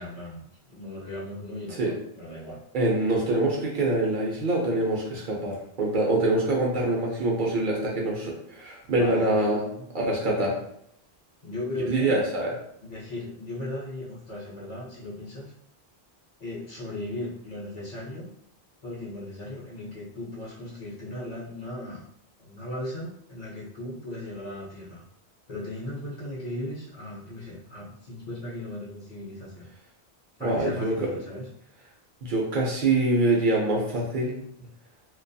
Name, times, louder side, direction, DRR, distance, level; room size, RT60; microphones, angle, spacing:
voice 1, 0.0-2.6 8.9-9.9 11.4-12.2 12.8-15.5 16.4-18.3 18.8-22.1 22.4-25.0 25.5-29.7 30.4-31.5 34.6-34.7, left 1 dB, 50° left, -6 dB, 0.6 m, -37 dB
voice 2, 2.7-9.6 9.9-10.6 11.9-12.6 30.4-31.1 32.2-34.4, right 2 dB, 60° right, -2 dB, 0.6 m, -25 dB
2.3 x 2.2 x 2.5 m, 0.71 s
omnidirectional pair, 1.1 m